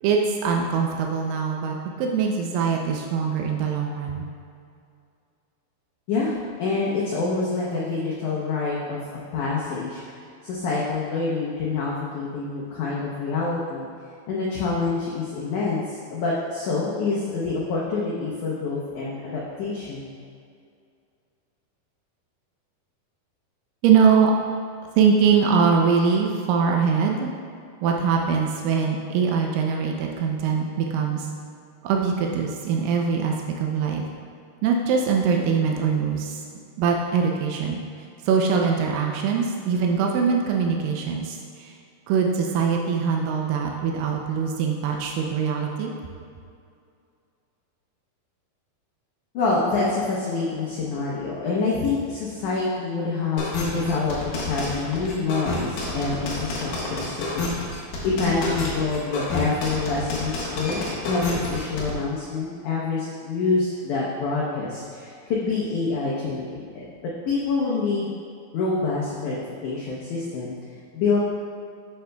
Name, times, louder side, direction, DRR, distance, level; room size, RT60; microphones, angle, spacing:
voice 1, 0.0-4.3 23.8-24.3 25.0-27.3 27.8-31.3 31.8-34.1 34.6-36.4 36.8-37.8 38.3-41.8 42.1-45.9, right 6 dB, 85° right, 1 dB, 1.9 m, -22 dB
voice 2, 6.1-9.0 9.3-10.2 10.4-13.9 14.3-20.1 49.3-57.5 57.7-66.9 67.3-68.1 68.5-71.2, left 4 dB, 85° left, -5 dB, 1.7 m, -26 dB
sound 1, 53.4-61.9, left 2 dB, 65° left, 3.0 m, -29 dB
13.0 x 5.6 x 2.3 m, 2.4 s
omnidirectional pair, 4.7 m